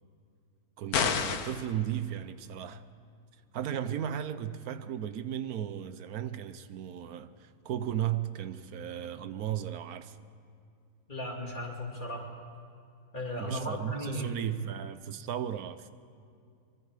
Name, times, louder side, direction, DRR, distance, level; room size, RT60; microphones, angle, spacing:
voice 1, 0.8-2.8 3.5-10.2 13.4-15.9, right 10 dB, 80° right, 1.2 m, -35 dB
sound 1, 0.9-1.7, left 7 dB, 85° left, 1.5 m, -28 dB
voice 2, 11.1-12.3 13.1-14.3, equal, 35° left, 2.9 m, -36 dB
24.0 x 23.5 x 4.9 m
omnidirectional pair, 1.6 m